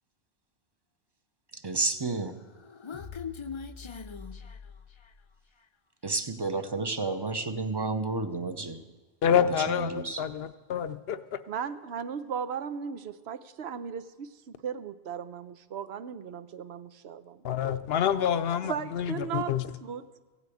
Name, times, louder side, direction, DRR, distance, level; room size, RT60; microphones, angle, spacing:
voice 1, 1.5-2.4 6.0-8.8 9.3-10.2, right 3 dB, 25° right, 9 dB, 0.7 m, -31 dB
Human voice, 2.3-5.3, left 6 dB, 35° left, 0.5 m, -41 dB
voice 2, 9.2-11.4 17.4-19.6, left 8 dB, 70° left, 12 dB, 0.8 m, -27 dB
voice 3, 11.5-17.6 18.6-20.2, right 7 dB, 85° right, 11 dB, 1.0 m, -37 dB
15.5 x 8.4 x 8.5 m, 1.3 s
omnidirectional pair, 1.1 m